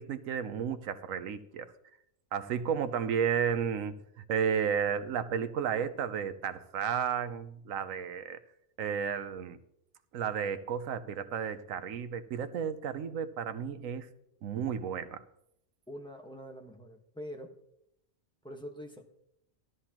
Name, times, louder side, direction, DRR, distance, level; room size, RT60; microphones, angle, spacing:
voice 1, 0.0-1.7 2.3-8.4 8.8-9.6 10.1-14.1 14.4-15.2, right 7 dB, 80° right, 11 dB, 1.1 m, -33 dB
voice 2, 15.9-17.5 18.4-19.0, equal, 5° left, 2 dB, 1.2 m, -44 dB
14.5 x 12.5 x 2.9 m, 0.78 s
omnidirectional pair, 1.4 m